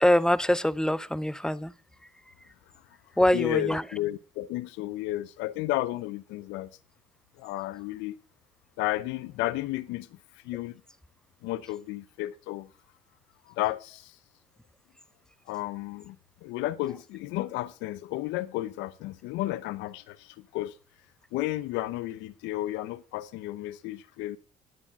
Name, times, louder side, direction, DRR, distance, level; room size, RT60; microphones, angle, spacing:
voice 1, 0.0-1.7 3.2-3.8, left 1 dB, 5° left, 0.7 m, -24 dB
voice 2, 3.3-6.7 7.4-8.2 8.8-10.1 10.4-10.7 11.4-12.7 13.5-14.2 15.5-16.2 16.4-20.8 21.3-24.4, left 16 dB, 80° left, 0.7 m, -32 dB
9.6 x 9.6 x 5.4 m
supercardioid pair, 65°, 19 cm